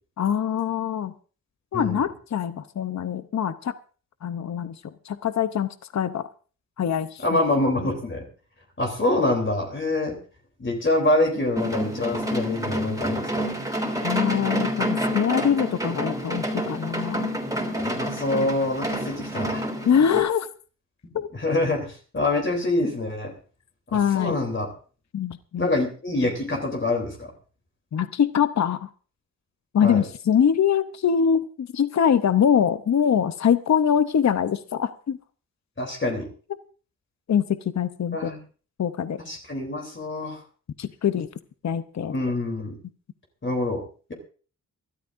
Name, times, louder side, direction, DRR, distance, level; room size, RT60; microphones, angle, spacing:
voice 1, 0.2-1.1 1.7-3.7 4.2-4.8 5.0-6.3 6.8-7.4 14.0-17.3 19.9-20.5 21.1-21.3 23.9-24.4 25.1-25.7 27.9-28.9 29.7-35.2 37.3-38.3 38.8-39.2 40.8-41.3 41.6-42.1, left 8 dB, 55° left, 12 dB, 0.8 m, -23 dB
voice 2, 7.2-8.2 8.8-10.2 10.6-13.5 17.8-19.7 21.3-23.3 23.9-24.7 25.6-27.3 29.8-30.0 35.8-36.3 38.1-38.4 39.2-40.4 42.1-42.8 43.4-43.8, left 2 dB, 35° left, 1 dB, 3.3 m, -25 dB
sound 1, 11.6-20.2, equal, 10° right, 3.3 m, -28 dB
24.0 x 13.0 x 2.6 m, 0.38 s
wide cardioid pair, 105°, 34 cm